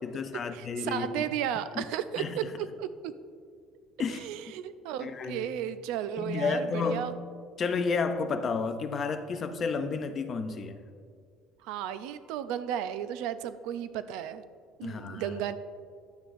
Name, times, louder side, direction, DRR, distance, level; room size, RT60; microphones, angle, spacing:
voice 1, 0.0-1.3 1.8-1.9 2.2-2.5 4.0-4.3 5.0-5.5 6.2-7.2 7.6-10.8 14.8-15.4, left 4 dB, 25° left, 9 dB, 0.4 m, -31 dB
voice 2, 0.5-3.1 4.1-7.1 11.6-14.4 14.8-15.6, right 10 dB, 70° right, 12 dB, 0.4 m, -34 dB
11.0 x 8.0 x 2.5 m, 2.2 s
cardioid pair, 170°, 0 cm